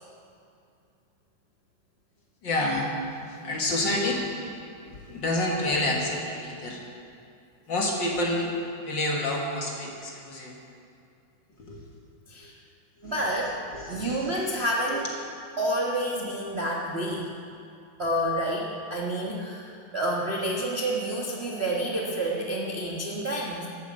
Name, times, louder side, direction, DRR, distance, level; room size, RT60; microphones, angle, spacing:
voice 1, 2.4-2.9 3.3-4.3 4.9-6.8 7.7-8.5 8.8-10.6 11.6-11.8 12.4-12.5 13.0-13.2 13.7-14.3 14.9-15.1, left 1 dB, 45° left, -1 dB, 1.9 m, -29 dB
voice 2, 13.0-13.6 13.9-15.1 15.6-17.3 18.0-23.7, right 1 dB, 60° right, -3 dB, 0.6 m, -29 dB
12.5 x 9.3 x 8.1 m, 2.5 s
omnidirectional pair, 3.4 m